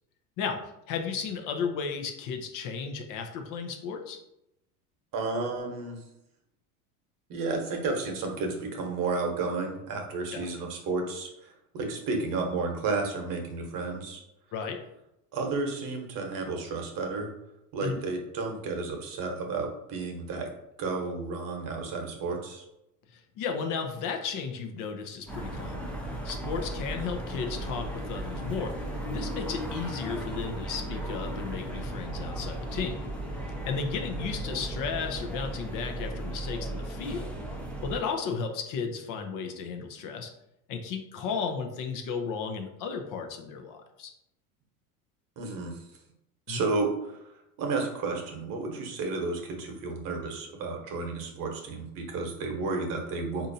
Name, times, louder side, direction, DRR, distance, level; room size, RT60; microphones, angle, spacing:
voice 1, 0.9-4.2 10.3-10.4 14.5-14.8 17.8-17.9 23.1-25.9 26.2-33.0 33.6-37.4 37.8-40.3 40.7-44.1 46.5-46.6, left 5 dB, 45° left, 4 dB, 0.6 m, -34 dB
voice 2, 5.1-6.0 7.3-14.2 15.3-17.3 17.7-20.5 20.8-22.6 45.4-45.8 46.5-47.2 47.6-53.5, right 3 dB, 45° right, 2 dB, 1.0 m, -32 dB
sound 1, 25.3-38.0, right 1 dB, 5° left, 0.6 m, -36 dB
4.1 x 2.6 x 2.6 m, 0.84 s
supercardioid pair, 100°, 45 cm